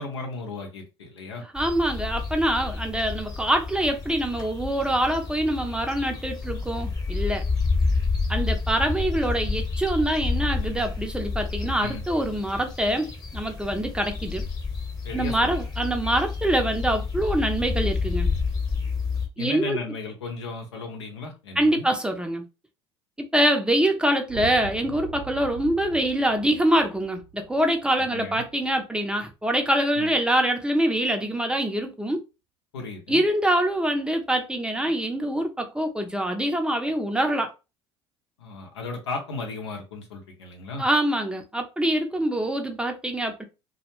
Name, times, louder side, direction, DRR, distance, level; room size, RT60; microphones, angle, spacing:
voice 1, 0.0-1.4 11.8-12.0 15.0-15.6 19.4-21.9 28.1-28.4 29.9-30.1 32.7-33.2 38.4-40.9, left 3 dB, 85° left, 0.7 m, -35 dB
voice 2, 1.5-7.4 8.3-14.4 15.1-18.3 19.4-19.8 21.6-22.4 23.3-32.2 33.1-37.5 40.8-43.4, right 1 dB, 5° right, 0.5 m, -25 dB
sound 1, 1.6-19.3, left 4 dB, 25° left, 1.0 m, -29 dB
sound 2, 24.3-28.7, right 9 dB, 55° right, 0.7 m, -40 dB
2.2 x 2.1 x 3.0 m
hypercardioid pair, 70°, 14 cm